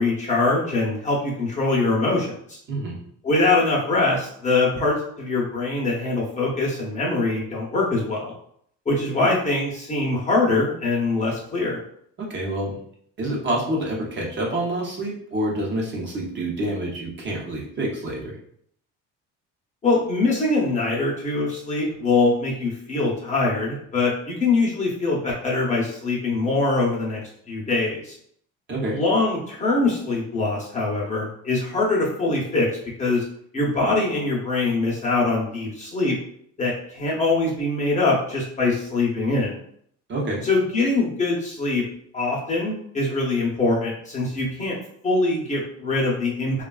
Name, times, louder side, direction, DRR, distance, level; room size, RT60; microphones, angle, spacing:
voice 1, 0.0-2.6 3.2-8.3 8.9-11.8 19.8-27.2 27.5-28.1 28.9-32.7 33.0-33.2 33.5-36.2 36.6-39.6 40.4-41.8 42.1-44.8 45.0-46.6, left 3 dB, 25° left, -4 dB, 0.7 m, -23 dB
voice 2, 12.2-12.7 13.2-18.3 28.7-29.0 40.1-40.4, right 1 dB, 35° right, -3 dB, 0.8 m, -27 dB
3.3 x 2.3 x 2.3 m, 0.66 s
cardioid pair, 140°, 30 cm